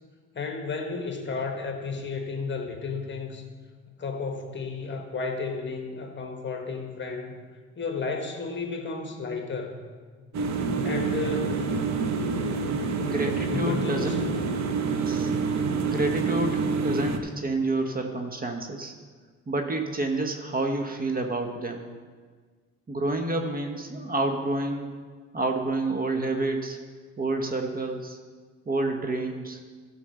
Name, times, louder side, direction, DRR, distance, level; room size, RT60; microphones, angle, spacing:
voice 1, 0.3-3.4 4.0-7.4 7.8-9.8 10.8-11.8 13.4-14.4, left 4 dB, 40° left, 3 dB, 1.5 m, -33 dB
sound 1, 10.3-17.2, right 4 dB, 65° right, 0.9 m, -27 dB
voice 2, 13.0-15.3 15.7-18.9 19.5-21.9 22.9-24.9 25.3-26.8 27.2-28.2 28.7-29.6, right 2 dB, 30° right, 4 dB, 1.0 m, -29 dB
12.5 x 4.5 x 6.7 m, 1.5 s
cardioid pair, 90°, 30 cm